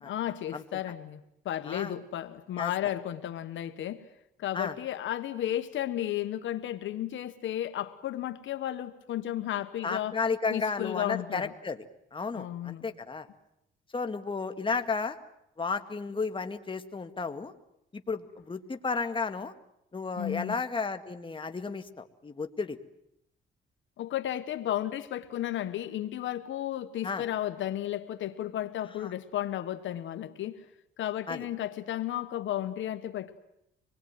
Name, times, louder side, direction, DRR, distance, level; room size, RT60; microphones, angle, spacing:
voice 1, 0.0-4.1 4.4-10.2 10.5-11.5 12.3-12.9 20.2-20.6 24.0-30.7 31.0-33.4, left 12 dB, 75° left, 1.3 m, -33 dB
voice 2, 9.8-11.8 12.1-13.3 13.9-15.2 15.6-17.5 17.9-19.5 19.9-22.8 27.0-27.2 29.0-29.1 31.3-31.5, left 4 dB, 25° left, 1.8 m, -33 dB
26.0 x 21.0 x 9.5 m
cardioid pair, 90°, 20 cm